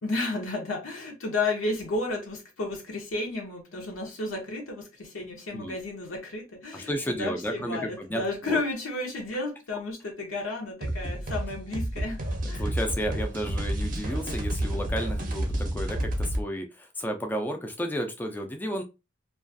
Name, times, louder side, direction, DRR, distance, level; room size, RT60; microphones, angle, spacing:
voice 1, 0.0-12.7, left 2 dB, 80° left, 0.7 m, -32 dB
voice 2, 6.7-8.6 12.6-18.8, equal, 10° left, 0.3 m, -32 dB
sound 1, 10.8-16.4, right 1 dB, 40° right, 0.6 m, -30 dB
2.3 x 2.3 x 2.5 m
head